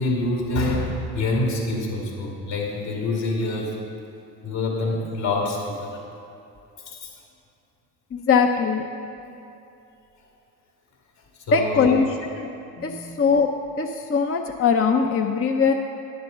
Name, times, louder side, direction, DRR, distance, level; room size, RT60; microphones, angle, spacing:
voice 1, 0.0-3.8 4.4-6.0 6.9-7.2 11.5-11.9 12.7-13.1, left 2 dB, 65° left, -1 dB, 2.4 m, -26 dB
voice 2, 8.1-8.8 11.5-12.5 12.8-13.5 13.8-15.7, left 5 dB, 30° left, 4 dB, 0.6 m, -21 dB
9.7 x 6.8 x 5.5 m, 2.7 s
hypercardioid pair, 55°, 49 cm